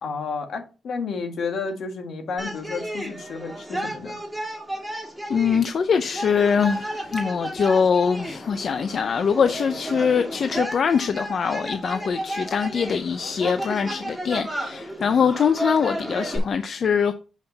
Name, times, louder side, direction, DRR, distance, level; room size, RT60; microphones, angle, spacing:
voice 1, 0.0-4.2, left 4 dB, 75° left, 1.7 m, -31 dB
sound 1, 2.4-16.4, right 1 dB, ahead, 2.6 m, -33 dB
voice 2, 5.3-17.1, left 6 dB, 50° left, 0.5 m, -23 dB
7.2 x 5.7 x 3.9 m
wide cardioid pair, 145°, 0 cm